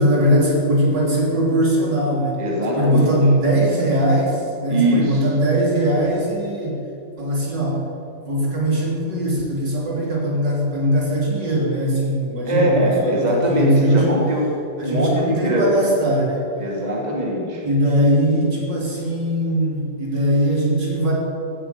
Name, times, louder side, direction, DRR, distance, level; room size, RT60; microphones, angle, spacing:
voice 1, 0.0-2.4 2.7-6.8 7.2-7.8 8.3-14.2 14.8-16.5 17.6-21.1, right 1 dB, 70° right, -3 dB, 4.0 m, -20 dB
voice 2, 2.4-3.2 4.7-5.2 12.4-14.5 14.8-15.9 16.6-17.6, equal, 20° right, -2 dB, 2.4 m, -21 dB
16.0 x 9.1 x 8.4 m, 2.8 s
omnidirectional pair, 2.0 m